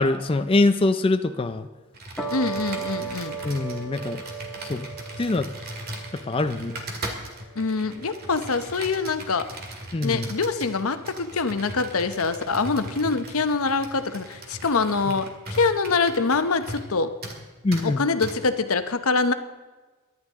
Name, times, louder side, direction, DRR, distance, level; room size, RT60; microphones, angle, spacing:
voice 1, 0.0-1.7 3.4-4.2 4.7-4.9 5.2-5.5 6.3-6.8 9.9-10.3 17.6-18.0, left 2 dB, 25° left, 8 dB, 0.4 m, -23 dB
Computer keyboard, 1.9-16.9 17.2-17.4 17.7-17.9 18.2-18.4, right 1 dB, 45° right, 2.1 m, -38 dB
sound 1, 2.2-8.7, right 5 dB, 5° left, 1.8 m, -37 dB
voice 2, 2.3-3.4 7.6-9.5 10.0-17.1 17.8-19.3, left 4 dB, 80° left, 9 dB, 0.9 m, -24 dB
23.0 x 11.0 x 3.7 m, 1.3 s
head